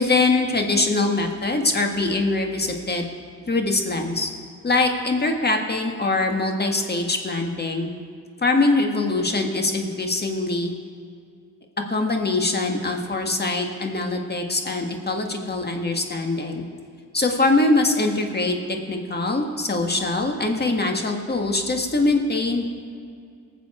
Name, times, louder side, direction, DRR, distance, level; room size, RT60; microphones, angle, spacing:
voice 1, 0.0-3.1 3.5-4.3 4.6-7.9 8.4-10.7 11.9-16.6 17.1-22.7, left 2 dB, 30° left, 3 dB, 1.8 m, -23 dB
19.0 x 7.2 x 4.4 m, 2.3 s
cardioid pair, 65°, 34 cm